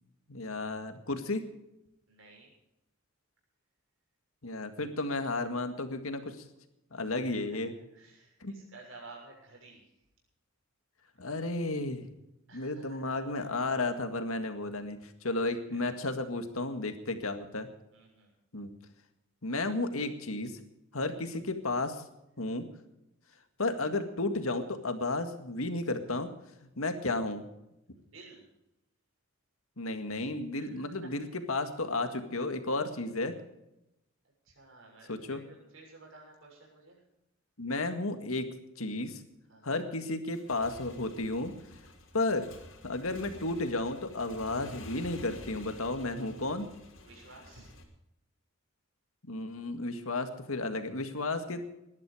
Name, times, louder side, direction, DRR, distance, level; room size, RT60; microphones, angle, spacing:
voice 1, 0.3-1.5 4.4-6.4 6.9-7.7 8.4-8.5 11.2-12.0 12.5-17.7 18.5-18.7 19.4-20.6 20.9-22.0 22.4-22.7 23.6-26.3 26.8-27.4 29.8-33.3 35.1-35.4 37.6-39.2 39.6-41.5 42.1-42.5 42.8-46.7 49.3-51.7, left 2 dB, 80° left, 7 dB, 2.0 m, -33 dB
voice 2, 2.1-2.5 7.1-7.6 7.9-9.9 12.5-13.0 13.4-13.5 15.3-15.4 15.7-16.0 17.9-18.3 21.0-21.2 28.0-28.5 30.7-31.1 34.4-37.0 39.5-39.9 47.0-47.7, right 3 dB, 65° right, -1 dB, 6.7 m, -53 dB
Motorcycle / Engine, 40.2-47.8, left 1 dB, 65° left, 3.2 m, -50 dB
18.5 x 12.0 x 5.0 m, 0.88 s
head